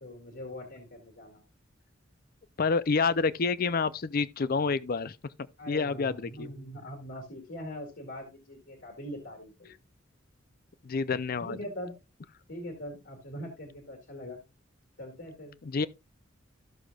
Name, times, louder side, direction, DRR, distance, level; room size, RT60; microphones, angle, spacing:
voice 1, 0.0-1.4 5.6-9.7 11.4-11.9 12.5-14.4 15.0-15.5, equal, 65° left, 2.3 m, -42 dB
voice 2, 2.6-5.2 5.7-6.5 10.8-11.6 15.6-15.9, left 4 dB, 50° left, 0.5 m, -28 dB
14.5 x 6.4 x 2.3 m
head